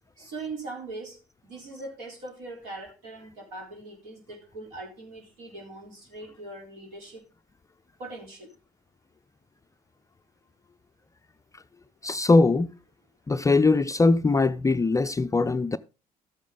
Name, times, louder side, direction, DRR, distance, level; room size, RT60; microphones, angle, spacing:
voice 1, 0.2-7.2 8.0-8.5, right 2 dB, 65° right, 3.6 m, -41 dB
voice 2, 12.0-12.7 13.3-15.8, left 3 dB, 15° left, 0.5 m, -21 dB
13.0 x 8.4 x 3.7 m
figure-of-eight pair, 50°, 19 cm